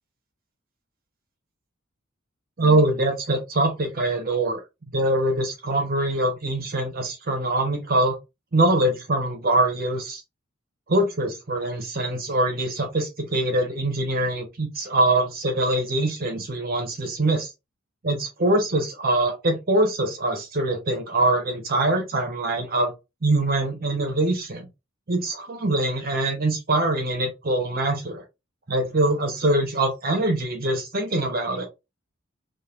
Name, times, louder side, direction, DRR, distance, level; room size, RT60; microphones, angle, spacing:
voice 1, 2.6-4.6 4.9-8.2 8.5-10.2 10.9-17.5 18.0-22.9 23.2-24.7 25.1-28.2 28.7-31.7, right 2 dB, 45° right, 0.9 m, -23 dB
3.2 x 2.5 x 2.4 m
head